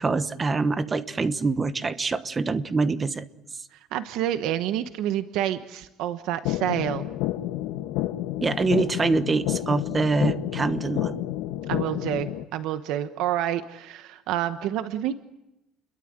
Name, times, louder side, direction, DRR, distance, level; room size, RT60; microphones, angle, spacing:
voice 1, 0.0-3.2 8.4-11.2, right 4 dB, 20° right, 12 dB, 1.1 m, -25 dB
voice 2, 3.7-7.0 11.7-15.1, right 11 dB, 70° right, 10 dB, 1.2 m, -28 dB
sound 1, 6.4-12.4, left 14 dB, 80° left, 1.3 m, -30 dB
30.0 x 22.5 x 9.0 m, 0.92 s
cardioid pair, 160°, 0 cm